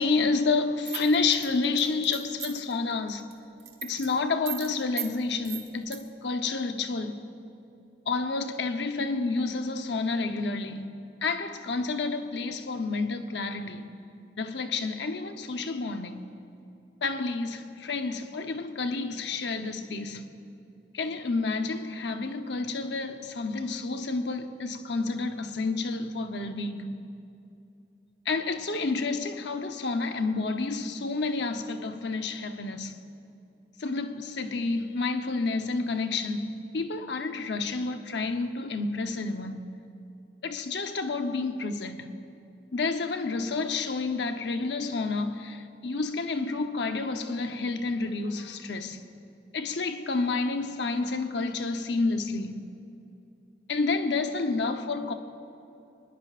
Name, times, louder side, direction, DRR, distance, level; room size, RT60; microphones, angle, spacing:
voice 1, 0.0-3.3 3.8-7.3 8.1-10.9 11.2-13.9 14.4-16.3 17.0-20.3 20.9-27.0 28.3-33.0 33.8-39.7 40.4-42.2 42.7-49.0 49.5-52.7 53.7-55.1, left 3 dB, 80° left, 0.8 m, -30 dB
sound 1, 0.9-2.7 3.1-3.3 3.6-4.1 4.5-4.7 5.0-5.1 5.4-6.0, right 12 dB, 65° right, 1.6 m, -36 dB
22.5 x 20.5 x 2.5 m
head